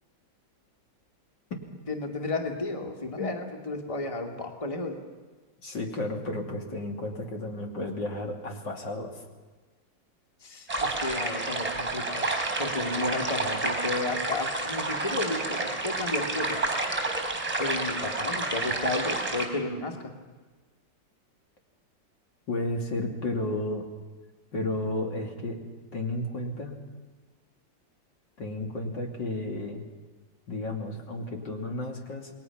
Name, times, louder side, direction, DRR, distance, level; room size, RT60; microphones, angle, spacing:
voice 1, 1.9-5.0 10.4-12.3 12.6-16.6 17.6-20.1, left 3 dB, 15° left, 2 dB, 2.2 m, -32 dB
voice 2, 5.6-9.2 22.5-23.9 24.5-25.6 25.9-26.7 28.4-29.9 30.5-32.3, left 2 dB, 70° left, 1 dB, 3.6 m, -32 dB
sound 1, 10.7-19.5, right 2 dB, 20° right, 4.6 m, -30 dB
29.0 x 21.0 x 5.9 m, 1.3 s
omnidirectional pair, 2.0 m